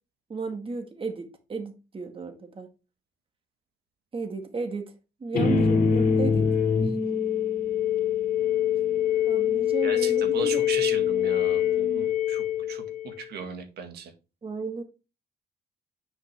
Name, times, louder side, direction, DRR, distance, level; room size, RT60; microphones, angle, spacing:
voice 1, 0.3-2.7 4.1-4.9 5.2-6.5 6.8-7.0 9.3-10.6 14.4-14.8, right 4 dB, 35° right, 1.7 m, -33 dB
sound 1, 5.3-13.3, left 8 dB, 60° left, 2.7 m, -24 dB
voice 2, 9.8-14.1, right 6 dB, 75° right, 1.8 m, -37 dB
9.6 x 5.4 x 3.4 m
cardioid pair, 90°, 17 cm